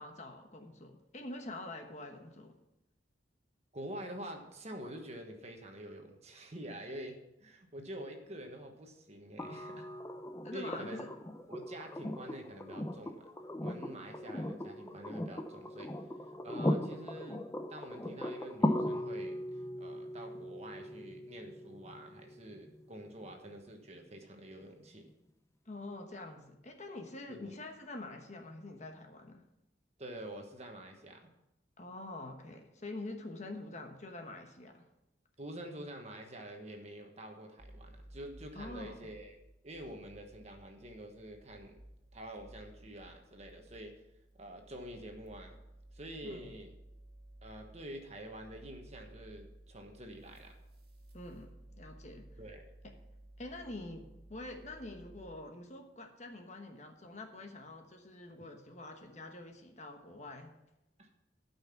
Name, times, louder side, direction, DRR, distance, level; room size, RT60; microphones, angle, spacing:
voice 1, 0.0-2.5 10.4-11.1 25.7-29.4 31.8-34.8 38.5-39.0 46.2-46.5 51.1-52.3 52.8-52.9 53.4-60.5, left 2 dB, 40° left, 4 dB, 1.1 m, -46 dB
voice 2, 3.7-9.9 10.5-11.0 11.5-13.3 13.6-15.9 16.4-25.1 27.3-27.5 30.0-31.3 35.4-39.4 39.6-41.8 42.1-43.9 44.4-45.6 45.9-46.7 47.4-50.5 52.4-52.6 61.0-61.1, right 1 dB, 35° right, 3 dB, 1.3 m, -47 dB
sound 1, 9.4-23.3 25.1-25.2, left 1 dB, 15° left, 0.6 m, -38 dB
sound 2, 37.6-55.3, right 1 dB, 55° right, 1.9 m, -56 dB
13.0 x 5.7 x 5.8 m, 0.89 s
head